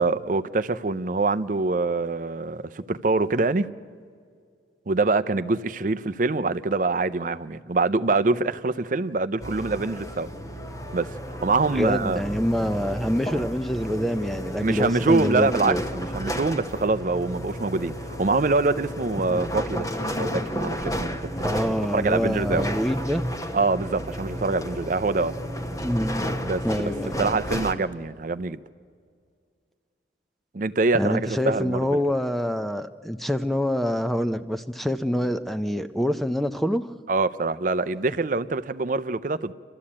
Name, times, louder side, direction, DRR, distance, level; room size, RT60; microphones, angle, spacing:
voice 1, 0.0-3.7 4.9-10.3 10.9-12.2 14.6-19.9 20.2-21.5 21.9-22.7 23.5-25.3 26.4-26.9 27.2-28.6 30.5-32.0 37.1-39.5, right 3 dB, 45° right, 0.5 m, -25 dB
sound 1, 9.4-27.7, equal, 20° left, 1.0 m, -32 dB
voice 2, 11.7-15.8 19.3-19.4 21.4-23.2 25.8-26.3 26.6-27.4 30.9-36.9, equal, ahead, 0.5 m, -26 dB
28.5 x 13.0 x 8.6 m
head